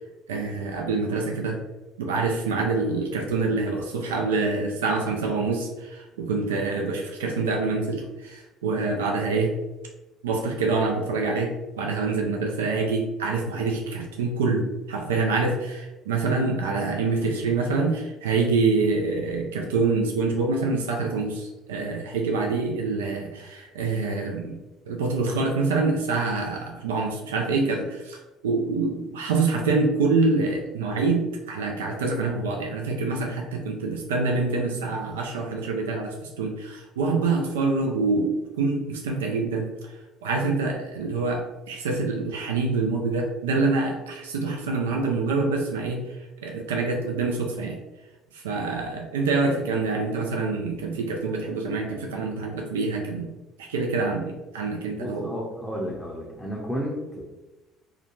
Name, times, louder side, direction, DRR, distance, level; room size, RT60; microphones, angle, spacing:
voice 1, 0.3-1.6 2.0-9.5 10.2-11.5 11.8-24.6 24.9-28.2 28.4-39.7 40.2-46.0 46.4-47.8 48.3-53.3 53.6-55.3, right 3 dB, 90° right, 1 dB, 0.3 m, -26 dB
voice 2, 54.9-57.2, equal, 5° left, -4 dB, 0.6 m, -32 dB
2.4 x 2.2 x 3.0 m, 1.1 s
hypercardioid pair, 65°, 0 cm